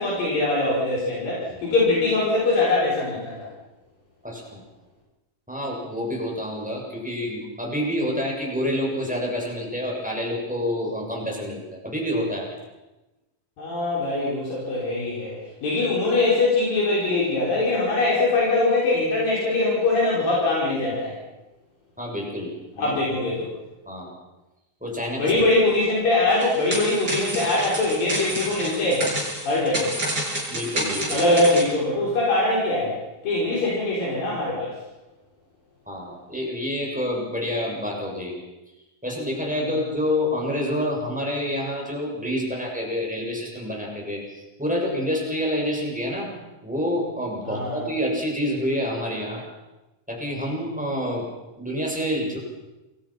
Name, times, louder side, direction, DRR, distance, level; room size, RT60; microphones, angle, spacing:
voice 1, 0.0-3.5 13.6-21.2 22.8-23.5 25.2-29.1 29.5-30.0 31.1-34.8 39.5-39.7 47.5-47.9, left 2 dB, 75° left, -5 dB, 7.0 m, -22 dB
voice 2, 4.2-4.6 5.5-12.6 22.0-23.0 23.9-24.1 24.8-25.4 30.5-31.2 35.9-38.4 39.0-46.3 46.6-49.5 50.1-51.2 51.6-52.4, equal, ahead, -2 dB, 7.0 m, -28 dB
sound 1, 26.3-31.7, right 1 dB, 25° right, 8.0 m, -29 dB
29.0 x 22.5 x 6.0 m, 1.0 s
omnidirectional pair, 4.0 m